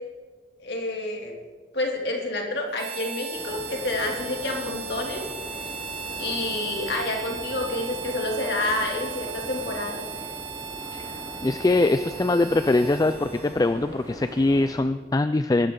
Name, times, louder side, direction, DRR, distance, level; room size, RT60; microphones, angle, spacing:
voice 1, 0.6-1.3 1.7-5.2 6.2-10.1, left 2 dB, 60° left, 0 dB, 2.7 m, -29 dB
Harmonica, 2.7-13.8, right 6 dB, 75° right, 1.9 m, -37 dB
sound 1, 3.3-14.8, equal, 15° right, 5.3 m, -41 dB
voice 2, 10.9-15.7, left 2 dB, 20° left, 11 dB, 0.3 m, -23 dB
22.5 x 12.0 x 3.8 m, 1.5 s
head